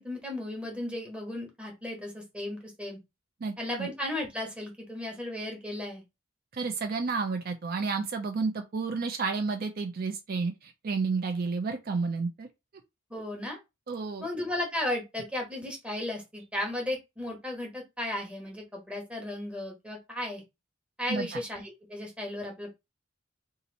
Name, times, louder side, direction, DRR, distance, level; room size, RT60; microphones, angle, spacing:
voice 1, 0.0-3.0 3.6-6.0 13.1-13.6 14.2-20.4 21.0-22.7, left 1 dB, 5° right, 1.2 m, -35 dB
voice 2, 3.4-3.9 6.5-12.5 13.9-14.3 21.1-21.4, right 4 dB, 50° right, 0.5 m, -31 dB
2.9 x 2.5 x 4.0 m
head